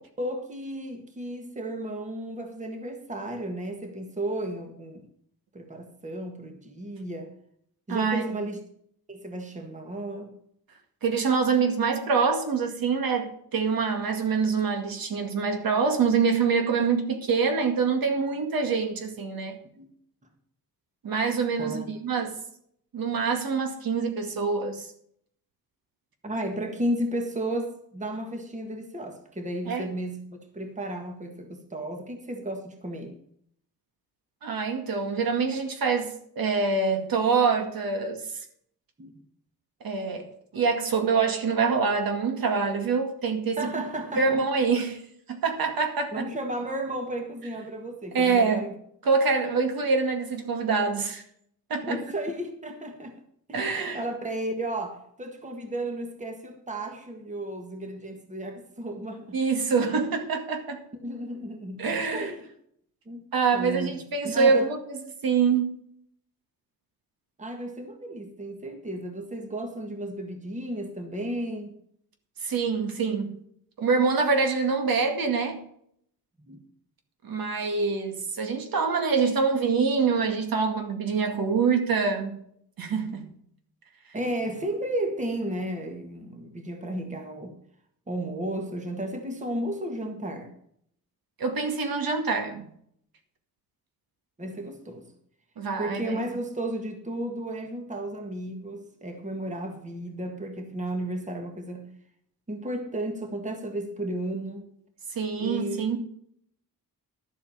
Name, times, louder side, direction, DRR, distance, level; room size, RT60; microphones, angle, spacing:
voice 1, 0.2-5.1 5.5-7.3 7.9-8.6 9.1-10.4 19.8-19.9 21.6-21.9 26.2-30.3 30.5-33.2 39.0-39.1 43.6-44.4 46.1-48.7 51.8-53.2 53.5-53.7 53.9-59.4 61.0-61.9 62.1-62.5 63.0-63.2 63.5-64.7 67.4-71.7 76.4-76.6 84.1-87.6 88.1-90.5 94.4-95.1 95.8-101.9 102.5-104.7 105.4-106.0, right 1 dB, 20° right, 1.7 m, -33 dB
voice 2, 7.9-8.3 11.0-19.6 21.0-22.4 22.9-24.9 29.7-29.9 34.4-38.2 39.8-43.8 44.2-45.0 45.3-46.3 48.1-48.7 49.0-51.2 51.7-52.0 53.5-54.0 59.3-60.8 61.8-62.3 63.3-65.7 72.4-73.3 73.8-75.6 77.2-82.4 82.8-83.3 91.4-92.7 95.6-96.2 105.1-106.0, right 5 dB, 70° right, 2.2 m, -25 dB
12.0 x 8.1 x 5.7 m
wide cardioid pair, 170°, 36 cm